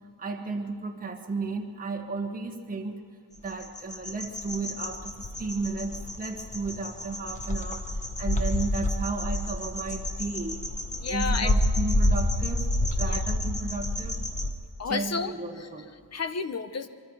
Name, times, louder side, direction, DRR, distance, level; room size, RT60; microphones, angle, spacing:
voice 1, 0.2-3.0 3.4-7.9 8.2-10.6 11.1-14.2 14.8-15.9, right 3 dB, 20° right, 1 dB, 1.3 m, -34 dB
sound 1, 3.4-14.5, left 1 dB, 15° left, 1.3 m, -29 dB
voice 2, 11.0-11.5 13.1-13.2 14.8-15.3 16.1-16.9, left 5 dB, 35° left, 11 dB, 0.8 m, -31 dB
25.0 x 24.5 x 4.7 m, 2.1 s
wide cardioid pair, 170°, 44 cm